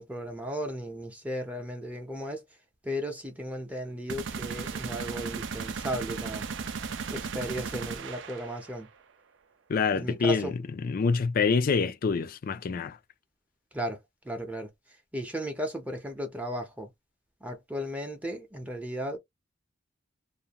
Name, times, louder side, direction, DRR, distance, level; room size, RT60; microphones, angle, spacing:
voice 1, 0.0-2.4 2.8-6.4 7.1-8.9 9.9-10.5 13.7-14.7 15.1-16.9 17.4-19.2, equal, 10° right, 0.6 m, -35 dB
sound 1, 4.1-8.8, right 5 dB, 70° right, 0.5 m, -36 dB
voice 2, 9.7-10.5 10.8-13.0, left 5 dB, 50° left, 0.4 m, -26 dB
2.5 x 2.1 x 2.8 m
head